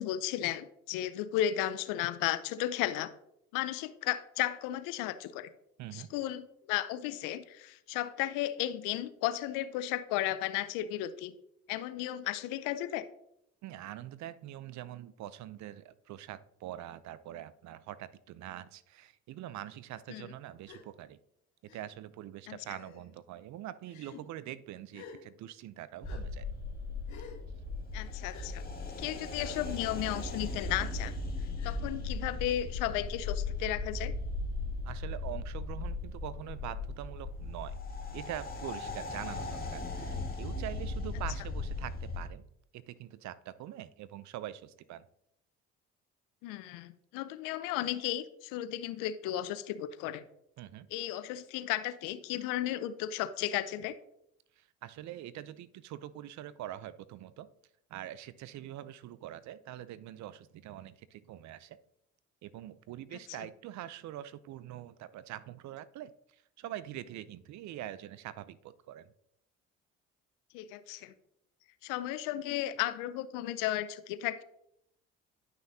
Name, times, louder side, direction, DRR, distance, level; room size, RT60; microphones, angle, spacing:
voice 1, 0.0-3.1 3.5-5.5 5.9-11.3 11.7-13.0 20.1-20.3 22.5-22.6 27.9-28.6 29.0-31.1 31.6-34.1 46.4-50.2 50.9-54.0 70.5-71.1 71.8-74.4, left 13 dB, 80° left, 13 dB, 0.7 m, -34 dB
voice 2, 5.8-6.1 13.6-21.2 21.6-26.5 34.8-37.8 38.1-42.5 42.7-45.1 50.6-50.9 54.6-57.5 57.9-61.8 62.4-69.1, right 12 dB, 60° right, 16 dB, 0.6 m, -44 dB
Gasp, 20.6-20.8 21.7-21.8 22.6-23.0 23.9-24.2 24.9-25.2 26.0-26.2 27.1-27.4 28.3-28.5 29.4-29.6 30.5-30.7 31.6-31.8, left 6 dB, 65° left, 1.7 m, -50 dB
sound 1, 26.0-42.3, left 3 dB, 30° left, 2.0 m, -37 dB
10.5 x 6.0 x 2.8 m, 0.78 s
supercardioid pair, 70°, 32 cm